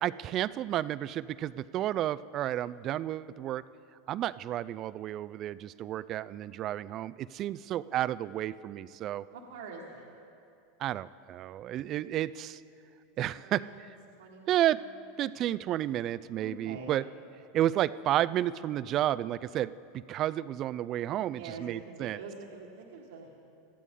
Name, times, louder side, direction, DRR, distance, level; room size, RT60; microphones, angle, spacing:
voice 1, 0.0-3.6 4.1-9.2 10.8-12.6 13.2-13.6 14.5-14.8 15.2-17.0 17.5-22.2, right 12 dB, 45° right, 17 dB, 0.3 m, -31 dB
voice 2, 9.3-10.0 13.2-13.8 14.2-14.7 16.3-17.0 21.2-23.3, right 4 dB, 80° right, -3 dB, 1.5 m, -45 dB
20.0 x 13.5 x 3.7 m, 2.6 s
hypercardioid pair, 105°, 0 cm